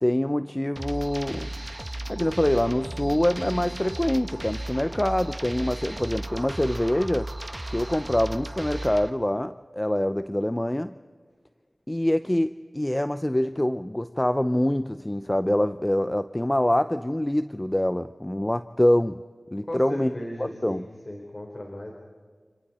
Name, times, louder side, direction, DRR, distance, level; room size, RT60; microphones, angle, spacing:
voice 1, 0.0-1.5 2.1-7.3 7.7-10.9 11.9-19.2 19.5-20.1 20.4-20.8, left 1 dB, 20° left, 11 dB, 0.6 m, -25 dB
sound 1, 0.8-9.1, right 1 dB, 25° right, 1.3 m, -35 dB
voice 2, 19.7-21.9, left 1 dB, 45° left, 0 dB, 4.1 m, -36 dB
28.5 x 28.5 x 4.3 m, 1.5 s
wide cardioid pair, 45°, 0 cm